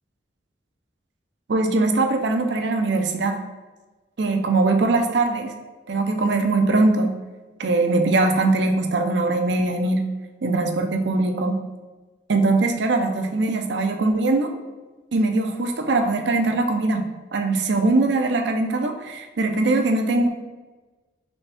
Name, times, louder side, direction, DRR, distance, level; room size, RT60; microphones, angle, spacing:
voice 1, 1.5-3.4 4.2-5.5 5.9-7.1 7.6-10.0 10.4-11.6 12.3-14.5 15.1-17.1 17.3-20.3, right 2 dB, 65° right, 5 dB, 0.5 m, -21 dB
4.0 x 3.5 x 3.4 m, 1.2 s
head